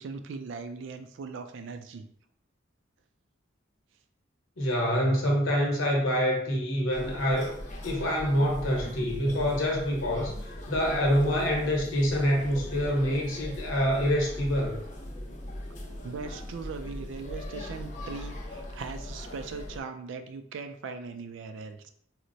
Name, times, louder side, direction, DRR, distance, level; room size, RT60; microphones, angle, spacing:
voice 1, 0.0-2.1 16.0-21.9, right 4 dB, 70° right, 8 dB, 0.3 m, -39 dB
voice 2, 4.6-7.5 7.8-14.8, equal, 85° left, -1 dB, 1.0 m, -26 dB
sound 1, 6.9-19.8, left 1 dB, 40° left, 0.5 m, -40 dB
4.3 x 2.0 x 2.6 m, 0.65 s
head